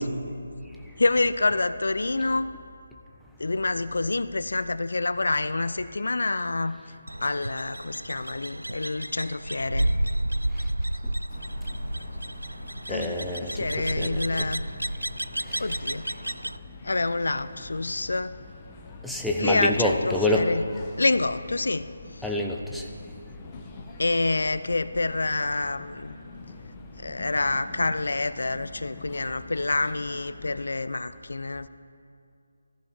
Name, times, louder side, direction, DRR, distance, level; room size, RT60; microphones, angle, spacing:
voice 1, 1.0-2.5 3.4-6.8 7.2-10.0 12.9-14.6 15.6-16.0 16.8-18.4 19.4-20.6 21.0-21.9 22.1-22.2 24.0-26.2 27.0-31.7, left 3 dB, 60° left, 14 dB, 0.5 m, -27 dB
sound 1, 7.1-16.6, right 1 dB, 80° right, 0.4 m, -31 dB
sound 2, 11.3-30.7, left 3 dB, 20° left, 1.2 m, -45 dB
voice 2, 12.9-13.5 13.8-14.5 19.0-20.5 22.2-22.8, left 1 dB, ahead, -1 dB, 0.8 m, -27 dB
19.0 x 14.0 x 4.7 m, 2.4 s
figure-of-eight pair, 150°, 0 cm